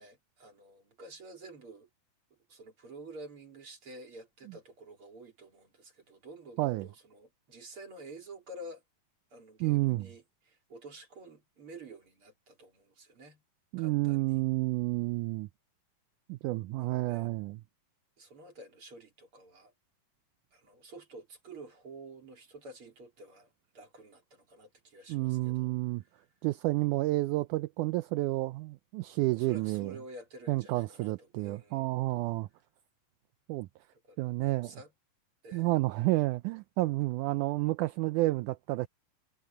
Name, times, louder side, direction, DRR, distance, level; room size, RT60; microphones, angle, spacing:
voice 1, 0.0-1.9 2.5-8.8 9.3-13.4 13.8-14.4 16.8-17.3 18.2-19.7 20.5-25.7 26.2-26.3 29.3-31.8 33.9-34.9 35.4-35.7, right 2 dB, 40° right, 4.1 m, -50 dB
voice 2, 9.6-10.1 13.7-15.5 16.3-17.6 25.1-26.0 26.4-29.9 30.5-32.5 33.5-33.7 34.2-34.8 35.5-38.9, right 20 dB, 80° right, 1.9 m, -30 dB
omnidirectional pair, 3.8 m